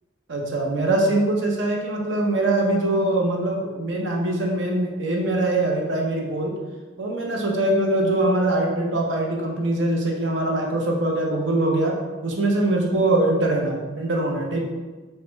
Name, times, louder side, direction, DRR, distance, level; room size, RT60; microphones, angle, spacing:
voice 1, 0.3-6.5 7.0-12.0 12.2-14.6, right 2 dB, 75° right, 0 dB, 0.8 m, -22 dB
6.5 x 2.2 x 3.0 m, 1.3 s
head